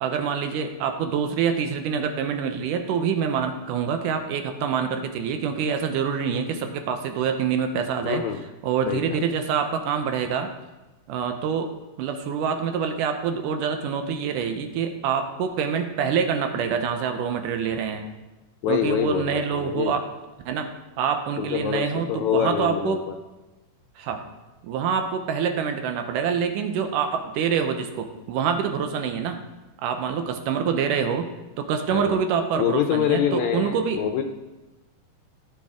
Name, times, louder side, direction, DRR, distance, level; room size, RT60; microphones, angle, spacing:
voice 1, 0.0-8.2 8.6-10.5 11.1-11.7 12.0-18.0 18.7-20.1 20.5-20.7 21.0-23.0 24.0-24.2 24.6-29.4 29.8-31.3 31.6-34.0, right 7 dB, 80° right, 7 dB, 2.4 m, -26 dB
voice 2, 8.1-8.4 8.9-9.2 18.6-20.0 21.4-23.1 31.9-32.2 32.6-34.2, left 9 dB, 75° left, 5 dB, 1.8 m, -25 dB
15.5 x 7.3 x 3.6 m, 1.1 s
omnidirectional pair, 3.8 m